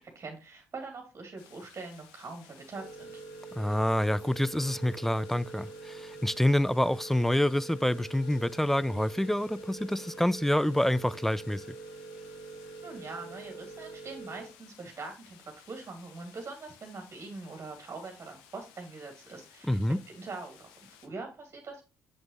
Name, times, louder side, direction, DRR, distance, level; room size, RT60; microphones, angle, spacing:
voice 1, 0.1-3.2 12.8-21.8, right 3 dB, 35° right, 2.5 m, -43 dB
sound 1, 1.4-21.1, left 8 dB, 70° left, 0.9 m, -57 dB
sound 2, 2.7-14.5, right 3 dB, 85° right, 1.5 m, -45 dB
voice 2, 3.6-11.6 19.7-20.0, left 1 dB, 5° left, 0.3 m, -27 dB
7.1 x 6.2 x 2.9 m
figure-of-eight pair, 45°, 7 cm